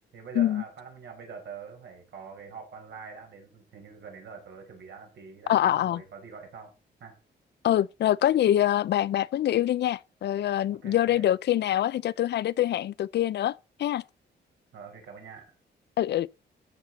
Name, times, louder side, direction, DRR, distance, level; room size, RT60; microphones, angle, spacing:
voice 1, 0.1-6.7 7.0-7.1 10.7-11.3 14.7-15.5, right 6 dB, 80° right, 5.0 m, -45 dB
voice 2, 5.5-6.0 7.6-13.5 13.8-14.0 16.0-16.3, left 12 dB, 70° left, 0.5 m, -25 dB
13.5 x 7.3 x 4.1 m
cardioid pair, 115°, 18 cm